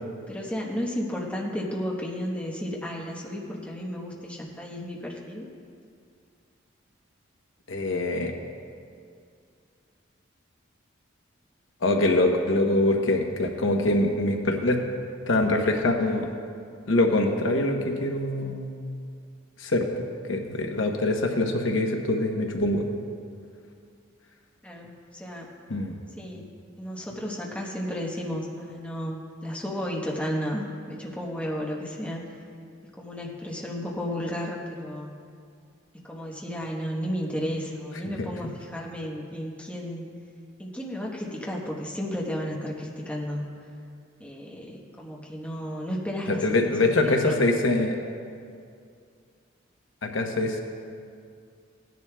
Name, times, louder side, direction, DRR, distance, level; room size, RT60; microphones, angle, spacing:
voice 1, 0.3-5.5 24.6-25.5 26.2-26.5 26.8-32.2 32.9-35.2 36.0-40.0 40.6-43.4 44.2-46.4 46.8-47.4, equal, 5° left, -3 dB, 1.1 m, -33 dB
voice 2, 7.7-8.3 11.8-14.8 15.3-16.3 16.9-18.7 19.6-22.9 25.7-25.9 46.3-48.0 50.0-50.6, left 2 dB, 70° left, 3 dB, 0.9 m, -24 dB
17.0 x 10.5 x 2.3 m, 2.3 s
head